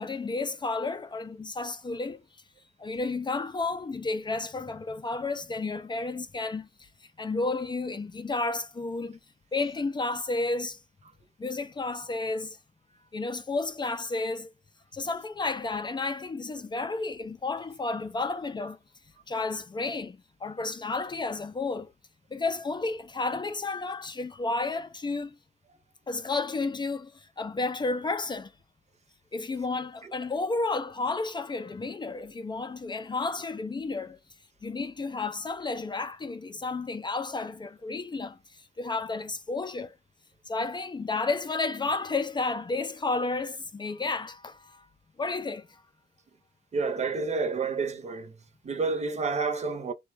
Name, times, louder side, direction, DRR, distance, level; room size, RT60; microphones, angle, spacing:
voice 1, 0.0-2.2 2.8-9.2 9.5-10.8 11.4-12.6 13.1-14.5 14.9-18.8 19.3-21.9 22.3-25.4 26.1-28.5 29.3-34.2 34.6-40.0 40.5-44.8 45.2-45.8, left 3 dB, 25° left, 0.5 m, -32 dB
voice 2, 46.7-48.3 48.6-49.9, right 4 dB, 40° right, 0.7 m, -29 dB
3.9 x 2.3 x 4.5 m
wide cardioid pair, 125°, 17 cm